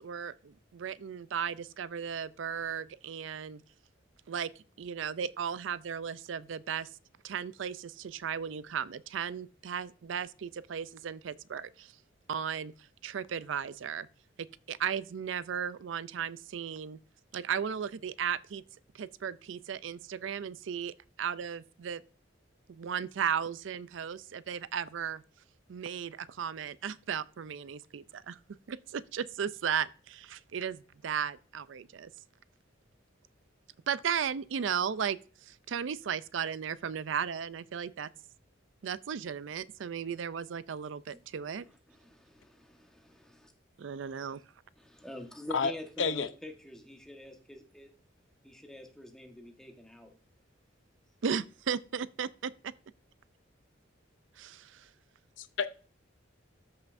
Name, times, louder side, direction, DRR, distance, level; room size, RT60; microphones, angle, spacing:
voice 1, 0.0-3.6 4.3-4.5 4.8-6.9 7.2-11.9 12.3-12.7 13.0-14.1 14.7-17.0 17.3-18.6 18.9-22.0 22.7-25.2 25.7-28.4 28.7-32.1 33.9-38.1 38.8-41.7 43.8-44.4 51.2-52.5 54.4-54.9, right 7 dB, 75° right, 0.4 m, -35 dB
voice 2, 41.1-43.5 44.8-47.9 48.4-50.1, left 1 dB, 5° left, 1.3 m, -47 dB
voice 3, 55.4-55.8, left 5 dB, 75° left, 0.7 m, -30 dB
13.5 x 5.6 x 2.6 m
head